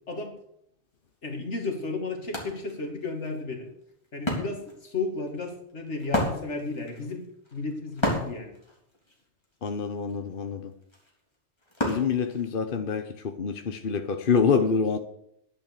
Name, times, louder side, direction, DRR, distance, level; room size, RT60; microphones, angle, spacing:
voice 1, 1.2-3.7 4.1-8.5, left 3 dB, 75° left, 3 dB, 2.7 m, -33 dB
Wood, 1.3-1.4 1.7-13.0, equal, 20° left, 3.5 m, -34 dB
voice 2, 9.6-10.7 11.8-15.0, left 6 dB, 50° left, 6 dB, 1.1 m, -26 dB
11.0 x 11.0 x 6.8 m, 0.74 s
omnidirectional pair, 1.2 m